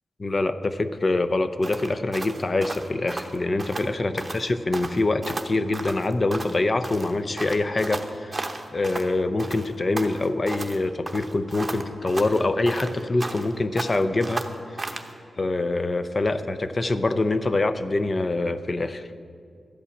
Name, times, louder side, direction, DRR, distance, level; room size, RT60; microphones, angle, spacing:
voice 1, 0.2-8.4 8.7-14.4 15.4-19.1, left 2 dB, 40° left, 11 dB, 0.6 m, -25 dB
sound 1, 1.6-3.9 4.2-4.4 4.7-6.6 6.8-9.1 9.4-10.8 11.1-13.5 13.8-15.1, right 2 dB, 25° right, 0.9 m, -34 dB
13.0 x 5.5 x 8.5 m, 2.3 s
cardioid pair, 80°, 0 cm